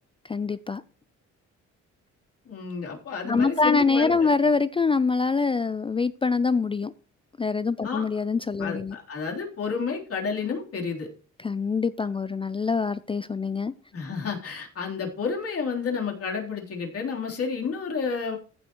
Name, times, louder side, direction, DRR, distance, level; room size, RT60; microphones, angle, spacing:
voice 1, 0.3-0.8 3.2-6.9 7.4-9.0 11.4-13.7, left 4 dB, 20° left, 15 dB, 0.4 m, -24 dB
voice 2, 2.5-4.3 7.8-8.1 8.6-11.1 13.9-18.4, left 5 dB, 50° left, 0 dB, 3.5 m, -30 dB
15.0 x 7.6 x 3.0 m, 0.38 s
cardioid pair, 90°, 30 cm